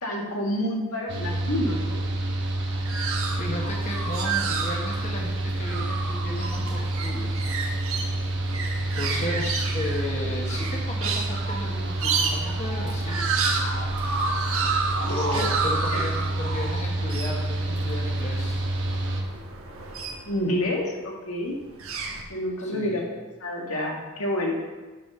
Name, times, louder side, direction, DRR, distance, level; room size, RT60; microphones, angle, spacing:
voice 1, 0.0-2.0 8.9-9.4 14.4-15.5 15.9-16.0 16.3-16.4 20.2-21.6 22.3-24.6, left 1 dB, 90° left, 0 dB, 1.7 m, -29 dB
Mechanical fan, 1.1-19.2, right 1 dB, 55° right, 1.3 m, -28 dB
sound 1, 2.5-20.6 21.5-22.2, right 4 dB, 75° right, 1.3 m, -31 dB
voice 2, 3.4-7.3 8.8-13.2 15.1-18.7 22.6-23.0, left 1 dB, 30° left, -1 dB, 1.2 m, -34 dB
8.6 x 5.4 x 6.8 m, 1.2 s
head